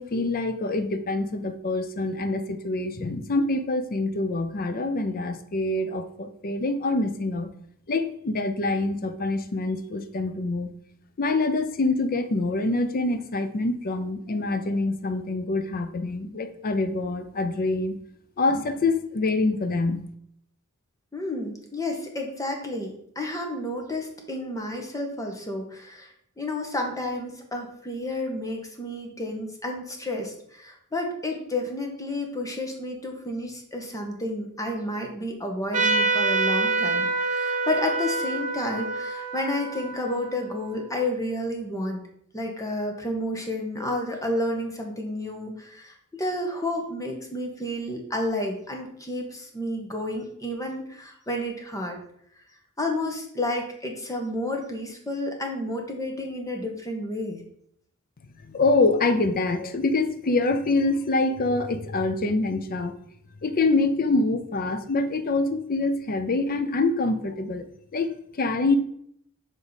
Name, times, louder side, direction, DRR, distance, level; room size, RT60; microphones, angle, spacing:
voice 1, 0.0-7.5 7.9-10.7 11.2-17.9 18.4-20.0 58.5-62.9 63.4-67.7 67.9-68.8, left 2 dB, 40° left, 9 dB, 0.6 m, -25 dB
voice 2, 21.1-42.0 42.3-52.0 52.8-57.4, left 1 dB, 15° left, 2 dB, 1.1 m, -31 dB
Trumpet, 35.7-40.8, right 3 dB, 35° right, 1.1 m, -26 dB
7.0 x 3.6 x 4.0 m, 0.69 s
head